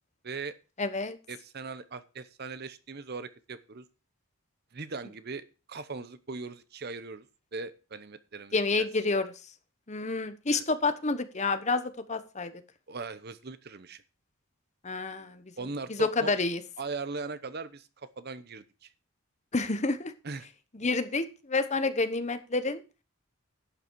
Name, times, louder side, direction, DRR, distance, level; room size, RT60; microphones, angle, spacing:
voice 1, 0.2-0.6 1.3-3.8 4.7-7.3 7.5-8.9 10.5-10.6 12.9-14.0 15.6-16.3 16.8-18.9 20.2-20.5, right 4 dB, 45° right, 13 dB, 0.8 m, -39 dB
voice 2, 0.8-1.2 8.5-9.3 9.9-12.5 14.8-15.4 15.9-16.6 19.5-20.1 20.8-22.8, left 3 dB, 30° left, 11 dB, 1.0 m, -29 dB
11.5 x 8.4 x 4.6 m, 0.32 s
head